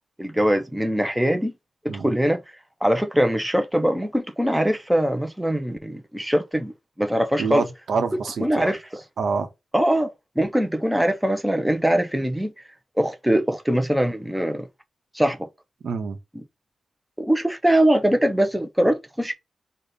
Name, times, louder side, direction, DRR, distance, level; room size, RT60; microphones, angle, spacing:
voice 1, 0.2-1.5 1.8-2.4 2.8-6.7 7.0-7.7 8.4-9.0 9.7-12.5 13.0-14.7 15.1-15.4 16.3-16.4 17.2-19.3, equal, 5° right, 0.4 m, -22 dB
voice 2, 7.4-8.7 9.2-9.5 15.8-16.2, right 5 dB, 75° right, 0.7 m, -26 dB
5.0 x 2.1 x 3.9 m
wide cardioid pair, 130°, 0 cm